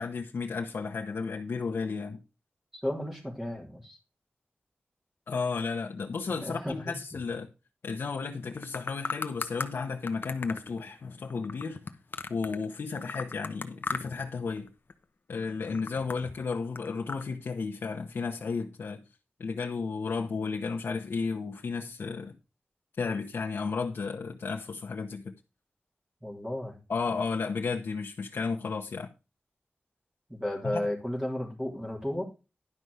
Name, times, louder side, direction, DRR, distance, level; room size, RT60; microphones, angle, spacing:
voice 1, 0.0-2.2 5.3-7.5 7.8-11.8 12.3-14.7 15.3-19.0 19.4-22.3 23.0-25.3 26.9-29.1 30.6-30.8, left 4 dB, 90° left, 1.1 m, -33 dB
voice 2, 2.8-4.0 6.4-6.9 15.7-15.8 26.2-26.8 30.3-32.2, left 1 dB, 10° right, 3.4 m, -33 dB
sound 1, 8.4-9.7 10.1-12.7 13.0-14.3 14.6-15.0 15.4-17.2, left 4 dB, 60° left, 1.0 m, -37 dB
11.0 x 5.6 x 4.9 m
wide cardioid pair, 100°, 4 cm